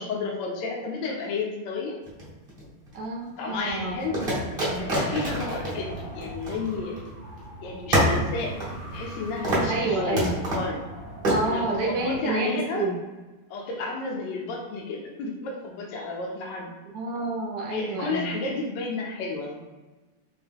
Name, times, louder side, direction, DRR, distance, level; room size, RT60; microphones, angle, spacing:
voice 1, 0.0-2.0 3.4-4.2 4.6-7.0 7.6-8.5 8.9-10.8 11.5-12.9 13.5-16.7 17.7-19.6, left 3 dB, 70° left, 0 dB, 1.1 m, -32 dB
sound 1, 2.1-2.9 4.1-7.1 7.4-7.5 7.9-9.2 9.4-9.8 10.2-10.7 11.2-11.4, right 1 dB, 35° right, 0.9 m, -26 dB
voice 2, 2.9-4.3 4.6-4.9 9.7-10.3 11.3-12.9 16.9-18.3, right 2 dB, 65° right, -2 dB, 1.2 m, -29 dB
Wind, 3.6-12.3, equal, 85° left, 0.4 m, -41 dB
4.6 x 2.2 x 3.5 m, 1.2 s
omnidirectional pair, 2.4 m